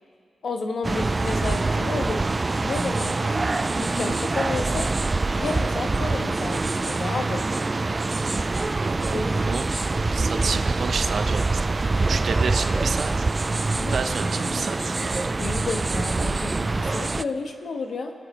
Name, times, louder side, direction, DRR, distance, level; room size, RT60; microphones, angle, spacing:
voice 1, 0.4-2.3 2.6-3.4 3.8-7.5 9.1-9.4 13.7-14.0 15.4-18.1, left 3 dB, 65° left, 4 dB, 1.2 m, -31 dB
sound 1, 0.8-17.2, right 3 dB, 30° right, 0.3 m, -25 dB
voice 2, 8.8-9.7 10.1-13.3 13.9-15.4, right 5 dB, 65° right, 7 dB, 0.9 m, -30 dB
26.5 x 9.5 x 3.2 m, 2.3 s
cardioid pair, 70°, 0 cm